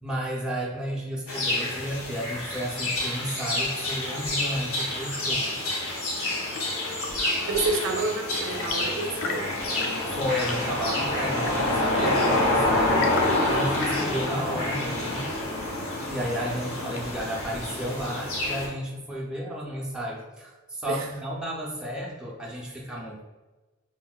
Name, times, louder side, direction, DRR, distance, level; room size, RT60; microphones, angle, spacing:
voice 1, 0.0-5.5 10.1-13.1 13.5-15.3 16.1-23.2, equal, 5° right, -4 dB, 0.4 m, -32 dB
sound 1, 1.3-18.7, left 1 dB, 80° left, 0.9 m, -28 dB
Chirp tweet / Engine / Tap, 6.3-17.4, left 4 dB, 65° left, 0.3 m, -41 dB
voice 2, 7.5-9.5 20.9-21.1, right 3 dB, 70° right, 3 dB, 0.4 m, -29 dB
4.3 x 2.0 x 2.3 m, 1.2 s
head